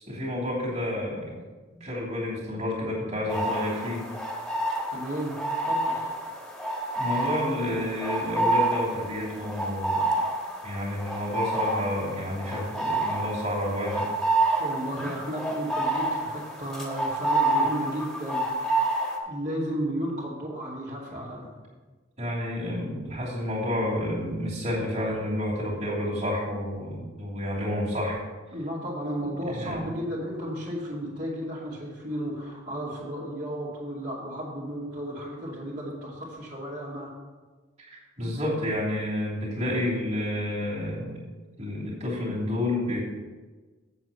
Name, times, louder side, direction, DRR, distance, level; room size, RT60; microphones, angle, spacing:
voice 1, 0.0-1.4 1.8-4.0 6.9-10.1 10.6-14.1 14.9-15.1 22.2-28.2 29.4-29.9 37.9-41.2 41.6-43.0, left 1 dB, 35° right, -6 dB, 3.0 m, -30 dB
sound 1, 3.3-19.2, right 2 dB, ahead, 1.5 m, -28 dB
voice 2, 4.9-5.3 5.6-6.1 14.6-18.4 19.3-21.5 28.5-37.1, equal, 55° right, -7 dB, 2.5 m, -33 dB
8.0 x 7.7 x 5.7 m, 1.3 s
head